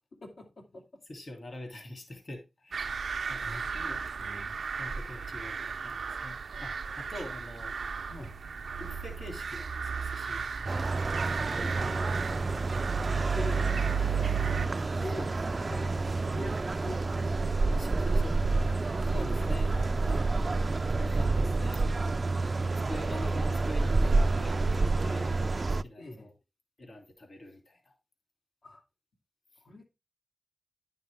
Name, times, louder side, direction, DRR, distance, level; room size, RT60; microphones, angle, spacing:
voice 1, 0.1-0.8 3.4-4.6 8.1-8.4 11.8-12.6 13.0-13.7 14.2-19.6 19.9-20.1 21.2-21.5 26.0-26.3 28.6-28.8 29.6-29.9, left 1 dB, 80° left, 2.7 m, -45 dB
voice 2, 1.1-3.0 3.3-3.4 4.7-7.8 8.8-10.4 10.7-10.9 11.3-11.9 14.3-14.7 15.1-15.3 17.8-18.4 19.0-19.7 20.0-20.3 20.9-21.8 22.9-26.3 26.8-27.9, left 1 dB, 50° left, 2.9 m, -44 dB
sound 1, 2.7-14.7, right 6 dB, 85° right, 0.7 m, -34 dB
sound 2, 10.7-25.8, right 3 dB, 40° right, 0.4 m, -29 dB
11.0 x 6.6 x 3.4 m
wide cardioid pair, 115°, 0 cm